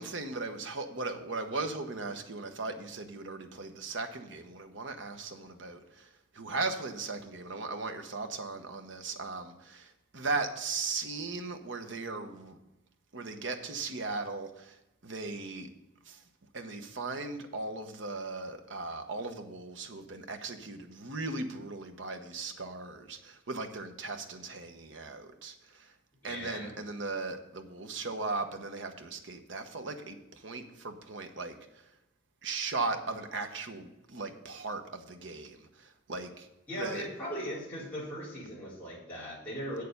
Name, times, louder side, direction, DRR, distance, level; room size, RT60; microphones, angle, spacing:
voice 1, 0.0-12.6 13.1-14.8 15.0-15.7 16.0-16.2 16.5-25.9 26.2-31.8 32.4-36.5 36.8-37.1, right 3 dB, 75° right, 6 dB, 1.1 m, -38 dB
voice 2, 26.2-26.7 36.7-39.8, equal, 10° left, -10 dB, 4.1 m, -38 dB
8.1 x 6.7 x 6.7 m, 0.94 s
head